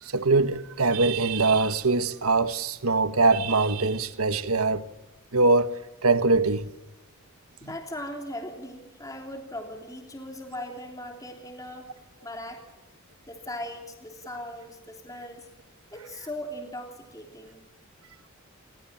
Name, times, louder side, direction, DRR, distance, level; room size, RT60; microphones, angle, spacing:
voice 1, 0.0-4.8 5.3-6.7, right 3 dB, 85° right, 1.4 m, -23 dB
voice 2, 7.6-11.9 12.2-12.6 13.3-15.5 15.9-17.6, left 1 dB, 15° left, 3.1 m, -39 dB
28.5 x 21.0 x 7.4 m
head